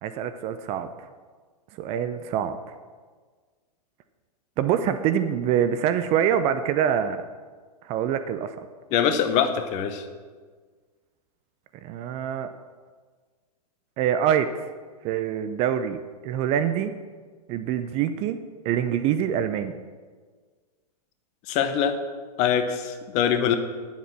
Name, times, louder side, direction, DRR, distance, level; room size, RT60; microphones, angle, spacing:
voice 1, 0.0-0.9 1.8-2.6 4.6-7.2 7.8-8.7 11.8-12.5 14.0-14.7 15.0-16.9 17.5-18.4 18.6-19.8, right 9 dB, 30° right, 10 dB, 0.5 m, -25 dB
voice 2, 8.9-10.0 21.5-21.9 22.4-23.6, left 8 dB, 35° left, 8 dB, 1.0 m, -23 dB
10.0 x 7.3 x 6.0 m, 1.5 s
hypercardioid pair, 115°, 21 cm